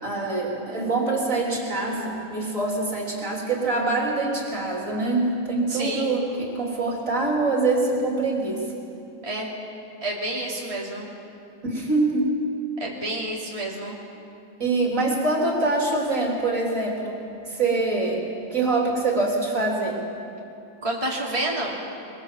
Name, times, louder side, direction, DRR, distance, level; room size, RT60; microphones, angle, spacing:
voice 1, 0.0-8.7 11.6-12.3 14.6-17.2 17.4-18.2 18.5-20.0, right 2 dB, 45° right, -1 dB, 3.7 m, -24 dB
voice 2, 5.7-6.1 9.2-9.5 10.0-11.1 12.8-14.0 20.8-21.7, right 1 dB, 20° right, -4 dB, 2.7 m, -29 dB
22.5 x 22.0 x 7.6 m, 2.7 s
omnidirectional pair, 2.0 m